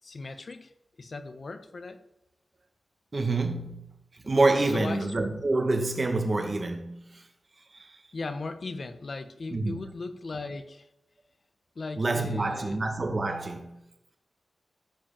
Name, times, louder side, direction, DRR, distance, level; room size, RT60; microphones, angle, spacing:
voice 1, 0.0-0.7 1.0-2.0 4.7-5.1 8.1-10.9 11.7-12.8, left 3 dB, 55° left, 1.3 m, -37 dB
voice 2, 3.1-3.9 4.2-7.2 7.7-8.0 9.5-9.8 12.0-13.8, right 2 dB, 45° right, 2.1 m, -27 dB
14.5 x 5.1 x 7.4 m
wide cardioid pair, 90°, 0 cm